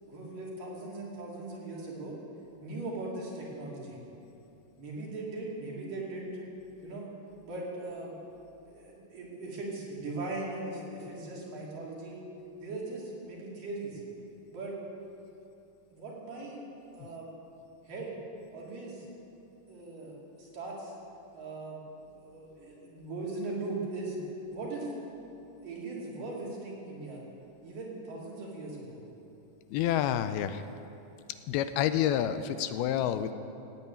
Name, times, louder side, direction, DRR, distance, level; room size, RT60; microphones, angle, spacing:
voice 1, 0.0-2.2 2.6-4.0 4.8-6.4 6.8-7.1 7.4-8.1 8.7-12.2 12.6-14.0 14.5-14.8 15.9-16.6 16.9-17.3 17.8-18.2 18.5-19.1 19.7-20.9 21.3-24.2 24.5-24.9 25.6-27.2 27.6-29.0, right 2 dB, 55° right, -4 dB, 4.4 m, -39 dB
voice 2, 29.7-30.6 31.5-33.3, left 10 dB, 80° left, 11 dB, 2.4 m, -28 dB
17.0 x 8.8 x 9.2 m, 2.7 s
omnidirectional pair, 4.7 m